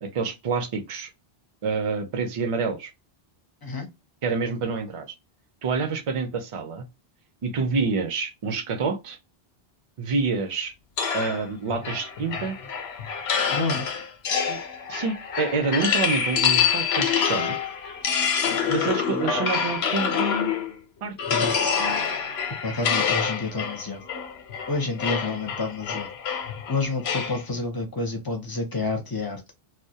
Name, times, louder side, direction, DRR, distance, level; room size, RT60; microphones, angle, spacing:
voice 1, 0.0-1.1 1.6-2.9 4.2-5.1 5.6-6.9 7.4-9.2 10.0-10.7 11.1-12.5 14.5-14.6 14.9-17.6 18.7-20.5 21.0-21.1, right 4 dB, 45° right, 0.5 m, -27 dB
sound 1, 11.0-20.8 21.2-27.4, left 7 dB, 90° left, 0.9 m, -26 dB
voice 2, 13.5-13.9 21.3-21.7 22.6-24.0 24.7-26.1 26.7-29.5, left 3 dB, 30° left, 0.4 m, -29 dB
2.2 x 2.1 x 2.7 m
omnidirectional pair, 1.0 m